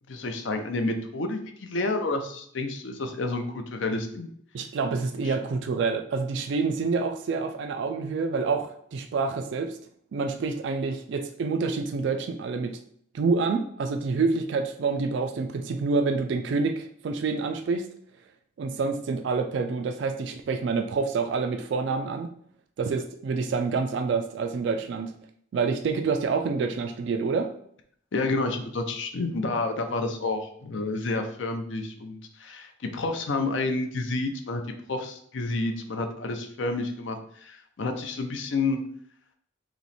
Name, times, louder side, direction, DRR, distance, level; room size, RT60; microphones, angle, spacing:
voice 1, 0.1-4.3 5.2-5.3 28.1-34.6 34.9-38.8, left 3 dB, 70° left, 6 dB, 0.5 m, -30 dB
voice 2, 4.5-9.8 10.1-12.8 13.1-17.9 18.6-22.3 22.8-25.1 25.5-27.5, right 4 dB, 60° right, 6 dB, 0.3 m, -27 dB
3.0 x 3.0 x 4.1 m, 0.65 s
head